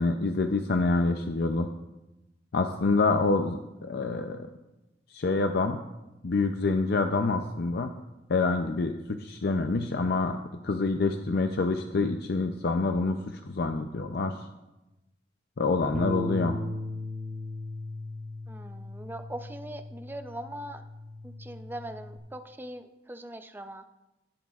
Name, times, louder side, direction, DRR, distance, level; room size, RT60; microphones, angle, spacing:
voice 1, 0.0-1.7 2.5-4.5 5.1-5.8 6.2-7.9 8.3-10.4 10.6-14.3 15.6-16.6, left 3 dB, 60° left, 6 dB, 0.5 m, -27 dB
Bass guitar, 15.9-22.2, left 1 dB, 45° right, 0.8 m, -37 dB
voice 2, 18.5-20.8 21.2-23.8, right 1 dB, 10° right, 9 dB, 0.5 m, -41 dB
17.5 x 8.0 x 2.4 m, 0.98 s
head